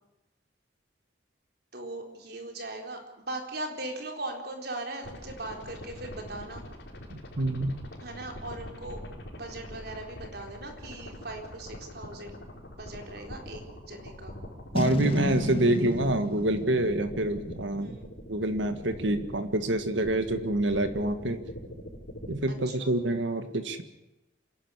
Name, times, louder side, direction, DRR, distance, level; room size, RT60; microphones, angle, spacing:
voice 1, 1.7-6.6 8.0-9.0 9.3-12.4 12.8-14.4 17.8-18.1 22.7-23.0, right 2 dB, 60° right, 3 dB, 4.1 m, -39 dB
sound 1, 5.0-22.3, left 1 dB, 70° left, 5.1 m, -43 dB
voice 2, 7.1-7.8 14.7-18.0 18.3-21.4 22.3-23.8, right 1 dB, 85° right, 8 dB, 1.9 m, -27 dB
Boom, 14.7-18.1, left 1 dB, 30° left, 1.1 m, -32 dB
27.0 x 11.5 x 9.9 m, 0.97 s
head